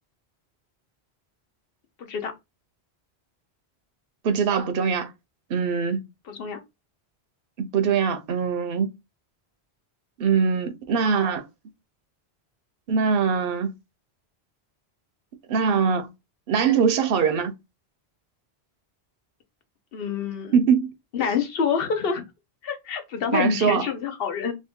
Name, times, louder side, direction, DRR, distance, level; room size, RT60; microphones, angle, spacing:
voice 1, 2.0-2.3 6.3-6.6 19.9-20.6 21.1-22.2 22.6-24.6, left 6 dB, 65° left, 0.9 m, -27 dB
voice 2, 4.2-5.1 5.5-6.0 7.6-8.9 10.2-11.4 12.9-13.7 15.5-16.1 16.5-17.5 20.5-20.9 23.3-23.9, right 6 dB, 65° right, 0.7 m, -22 dB
2.7 x 2.6 x 3.5 m
omnidirectional pair, 1.1 m